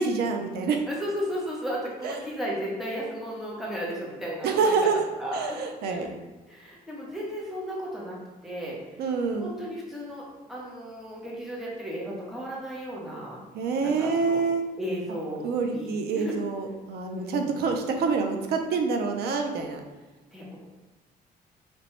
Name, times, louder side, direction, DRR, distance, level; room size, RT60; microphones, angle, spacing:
voice 1, 0.0-0.8 2.0-2.1 4.4-5.0 5.3-6.2 9.0-9.5 13.5-14.6 15.4-19.8, right 4 dB, 85° right, 4 dB, 0.6 m, -26 dB
voice 2, 0.9-4.8 5.2-5.6 5.9-6.1 6.5-8.2 8.4-8.8 9.4-13.4 13.8-14.4 14.8-15.5 15.7-16.4 17.1-17.7 20.3-20.6, equal, ahead, -5 dB, 0.9 m, -34 dB
4.4 x 3.0 x 3.1 m, 1.2 s
cardioid pair, 165°, 16 cm